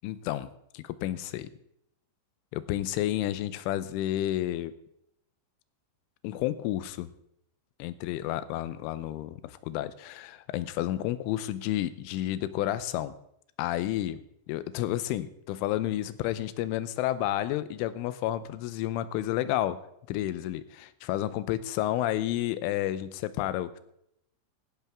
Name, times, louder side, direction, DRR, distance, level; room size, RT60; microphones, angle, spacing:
voice 1, 0.0-1.5 2.5-4.7 6.2-7.1 7.8-13.1 13.6-14.2 14.5-19.8 20.1-23.8, left 13 dB, 85° left, 15 dB, 3.2 m, -31 dB
16.5 x 11.5 x 3.6 m, 0.75 s
omnidirectional pair, 5.6 m